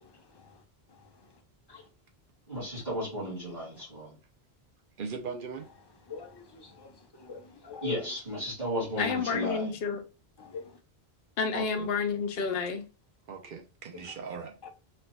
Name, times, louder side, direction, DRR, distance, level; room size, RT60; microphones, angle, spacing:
voice 1, 0.0-0.6 1.0-1.1 1.7-1.8 6.1-8.0 10.4-10.8 14.0-14.1 14.6-14.7, left 5 dB, 30° left, 0.5 m, -43 dB
voice 2, 2.5-4.1 7.8-9.7, equal, 45° right, 2.1 m, -34 dB
voice 3, 5.0-5.7 9.1-9.2 11.5-11.9 13.3-14.7, right 5 dB, 60° right, 0.8 m, -39 dB
voice 4, 9.0-10.0 11.4-12.9, left 5 dB, 75° left, 0.9 m, -30 dB
4.4 x 2.5 x 2.2 m
omnidirectional pair, 1.1 m